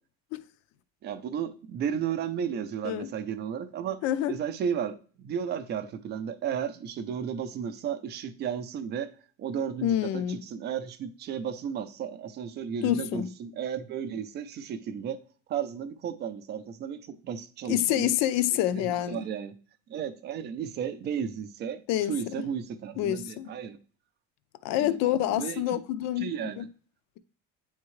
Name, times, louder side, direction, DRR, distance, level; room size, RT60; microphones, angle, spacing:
voice 1, 1.0-4.0 4.3-9.1 9.4-15.2 15.5-18.1 18.7-19.5 19.9-21.8 22.1-23.8 24.7-25.8 26.2-26.6, right 8 dB, 35° right, 0.5 m, -34 dB
voice 2, 4.0-4.3 9.8-10.4 12.8-13.3 17.7-19.2 21.9-22.4 23.0-23.5 24.6-26.6, left 12 dB, 55° left, 0.5 m, -27 dB
9.4 x 3.6 x 3.1 m
cardioid pair, 170°, 31 cm